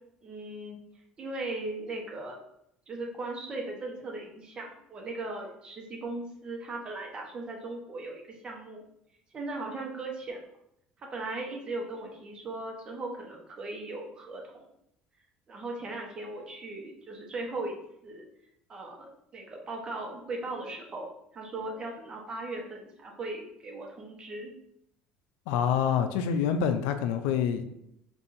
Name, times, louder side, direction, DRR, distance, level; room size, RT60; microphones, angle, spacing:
voice 1, 0.2-0.8 1.2-2.4 2.9-8.8 9.3-10.4 11.0-14.6 15.5-17.8 18.0-18.2 18.7-19.1 19.3-21.1 21.3-24.5, right 2 dB, 30° right, 0 dB, 0.9 m, -38 dB
voice 2, 25.5-27.6, left 8 dB, 85° left, 8 dB, 0.4 m, -26 dB
5.5 x 2.6 x 2.6 m, 0.76 s
cardioid pair, 130°, 3 cm